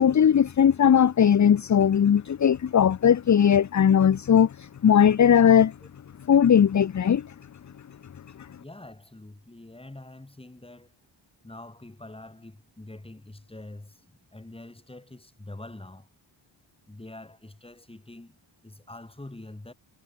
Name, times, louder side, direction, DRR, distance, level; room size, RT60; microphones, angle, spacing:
voice 1, 0.0-5.7 6.3-7.3 8.4-8.5, left 8 dB, 40° left, 0.8 m, -19 dB
voice 2, 8.6-10.9 11.4-16.1 16.9-18.4 18.6-19.7, left 2 dB, 10° left, 6.8 m, -45 dB
wide cardioid pair, 130°, 45 cm